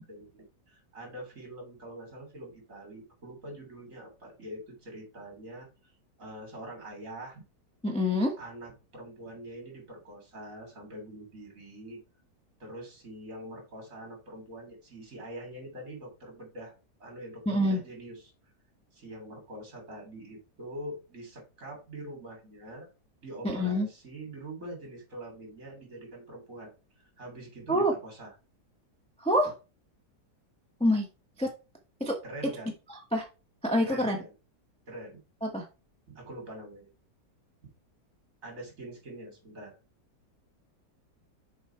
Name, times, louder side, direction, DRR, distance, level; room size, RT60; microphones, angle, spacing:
voice 1, 0.1-5.7 6.2-7.4 8.4-12.0 12.6-16.7 17.0-18.3 18.9-22.9 23.2-26.7 27.2-28.3 32.2-32.7 33.8-34.3 34.9-35.2 36.1-36.9 38.4-39.8, right 1 dB, 45° right, 1 dB, 3.4 m, -44 dB
voice 2, 7.8-8.3 17.5-17.8 23.4-23.9 27.7-27.9 29.2-29.5 30.8-31.1 31.4-31.5 32.0-32.1 33.1-33.2 33.6-34.2 35.4-35.6, equal, 5° left, 1 dB, 0.8 m, -26 dB
7.2 x 4.3 x 4.4 m, 0.31 s
omnidirectional pair, 1.9 m